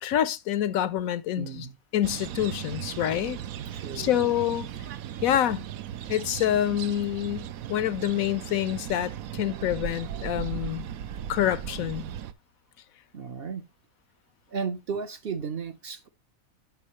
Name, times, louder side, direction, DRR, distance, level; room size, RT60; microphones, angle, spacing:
voice 1, 0.0-1.7 1.9-3.4 4.0-4.7 5.2-5.7 6.1-10.9 11.3-12.1, left 11 dB, 75° left, 1.1 m, -27 dB
voice 2, 1.4-1.7 3.7-4.1 5.1-5.2 13.1-13.7 14.5-16.1, right 5 dB, 50° right, 0.8 m, -34 dB
sound 1, 2.0-12.3, right 10 dB, 75° right, 1.1 m, -37 dB
9.2 x 6.1 x 3.0 m
omnidirectional pair, 1.5 m